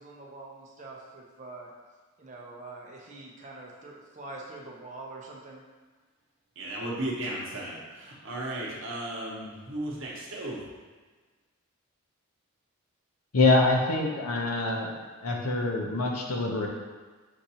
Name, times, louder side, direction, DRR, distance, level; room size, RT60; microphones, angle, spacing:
voice 1, 0.0-1.7 2.2-5.6, right 2 dB, 35° right, -2 dB, 0.6 m, -44 dB
voice 2, 6.6-10.6, right 1 dB, 60° right, -4 dB, 1.0 m, -35 dB
voice 3, 13.3-14.9 15.2-16.7, left 2 dB, 85° left, 0 dB, 0.7 m, -25 dB
6.5 x 2.6 x 2.8 m, 1.4 s
head